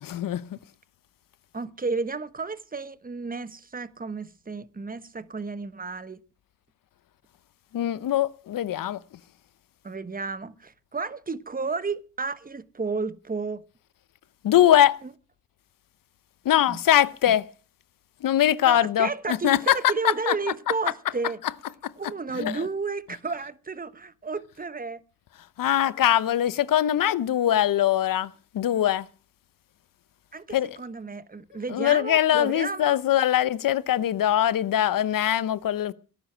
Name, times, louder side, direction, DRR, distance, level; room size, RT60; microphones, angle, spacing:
voice 1, 0.0-0.6 7.7-9.0 14.4-15.0 16.4-17.5 18.2-19.8 20.0-20.3 21.8-21.9 22.3-22.5 25.6-29.1 30.5-30.8 31.7-35.9, left 11 dB, 70° left, 0.8 m, -22 dB
voice 2, 1.5-6.2 9.8-13.6 15.0-15.1 16.7-16.8 17.3-17.4 18.6-21.4 22.0-25.0 30.3-33.0, right 4 dB, 25° right, 1.2 m, -32 dB
18.0 x 10.0 x 6.2 m
supercardioid pair, 50°, 34 cm